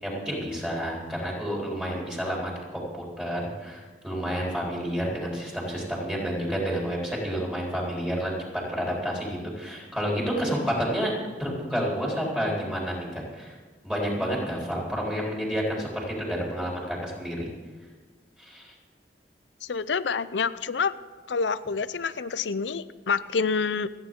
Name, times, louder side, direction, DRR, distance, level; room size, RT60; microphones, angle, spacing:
voice 1, 0.0-8.3 8.7-11.1 11.4-13.5 13.8-17.5 18.4-18.7, equal, 5° right, -4 dB, 3.8 m, -30 dB
voice 2, 19.6-20.9 21.3-23.9, left 5 dB, 85° left, 15 dB, 0.6 m, -27 dB
28.5 x 9.7 x 3.8 m, 1.4 s
head